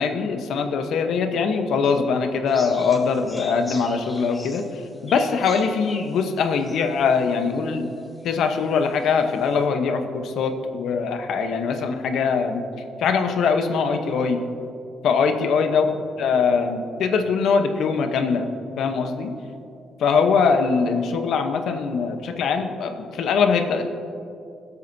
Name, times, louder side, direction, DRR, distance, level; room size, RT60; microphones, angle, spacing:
voice 1, 0.0-4.6 5.0-7.9 8.2-12.6 13.0-14.4 15.0-15.9 16.2-18.5 18.8-19.3 20.0-23.8, left 5 dB, 75° left, 6 dB, 0.9 m, -22 dB
sound 1, 2.5-7.7 8.2-8.3 8.8-9.3, left 2 dB, 20° left, 1.4 m, -41 dB
20.5 x 8.2 x 2.7 m, 2.6 s
cardioid pair, 90°, 0 cm